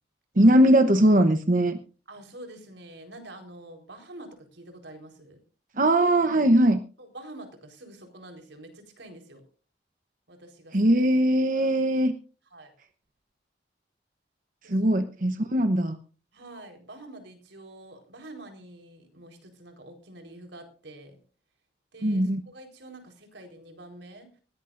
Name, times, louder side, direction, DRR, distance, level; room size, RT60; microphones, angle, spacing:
voice 1, 0.4-1.8 5.8-6.8 10.7-12.1 14.7-16.0 22.0-22.4, right 1 dB, 45° right, 8 dB, 0.9 m, -20 dB
voice 2, 2.1-5.4 7.0-9.4 10.3-11.0 11.5-11.8 12.5-12.7 14.6-14.9 16.3-21.2 21.9-24.4, right 1 dB, 80° right, 4 dB, 4.3 m, -46 dB
20.5 x 17.5 x 2.6 m, 0.39 s
head